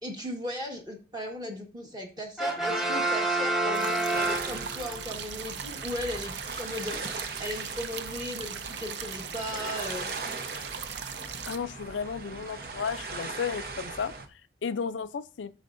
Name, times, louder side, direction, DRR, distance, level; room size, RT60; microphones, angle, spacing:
voice 1, 0.0-10.1, left 1 dB, 20° right, 1.4 m, -37 dB
Brass instrument, 2.4-5.0, right 2 dB, ahead, 0.7 m, -28 dB
sound 1, 3.7-11.6, right 8 dB, 70° right, 0.6 m, -39 dB
sound 2, 4.1-14.3, right 3 dB, 55° right, 0.9 m, -39 dB
voice 2, 11.5-14.1 14.6-15.5, left 6 dB, 85° left, 0.5 m, -33 dB
9.1 x 6.3 x 2.6 m
head